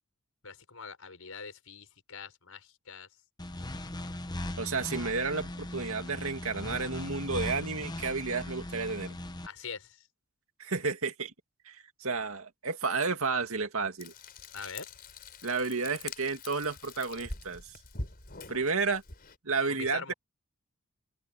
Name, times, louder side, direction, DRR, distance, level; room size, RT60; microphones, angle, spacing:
voice 1, 0.4-3.1 9.4-10.1 14.5-14.9 19.7-20.1, left 5 dB, 75° left, 5.2 m, -43 dB
sound 1, 3.4-9.5, left 1 dB, 20° left, 1.0 m, -39 dB
voice 2, 4.6-9.2 10.6-11.3 11.7-14.1 15.4-17.6 18.5-19.0 19.4-20.1, right 4 dB, 70° right, 2.3 m, -31 dB
Frying (food), 14.0-19.4, left 3 dB, 45° left, 4.9 m, -44 dB
open air
head